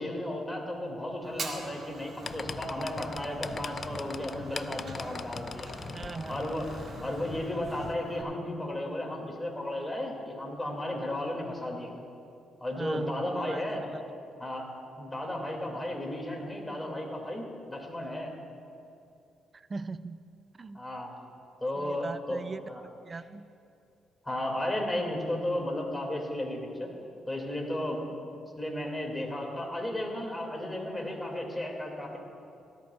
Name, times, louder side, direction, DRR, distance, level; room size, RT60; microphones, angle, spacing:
voice 1, 0.0-5.7 6.3-6.6 7.0-11.9 12.6-13.8 14.4-14.7 14.9-18.3 20.7-21.1 21.6-22.4 22.7-22.8 24.2-26.9 27.3-28.0 28.6-32.2, left 1 dB, 10° left, 0 dB, 2.3 m, -34 dB
Fire, 1.2-8.2, right 3 dB, 50° right, 1.4 m, -44 dB
sound 1, 2.2-8.0, left 5 dB, 40° left, 0.3 m, -41 dB
voice 2, 5.9-6.5 12.8-14.0 19.5-20.2 20.6-20.8 21.8-23.5, right 4 dB, 30° right, 13 dB, 0.4 m, -40 dB
16.5 x 13.5 x 2.4 m, 2.6 s
cardioid pair, 90°, 0 cm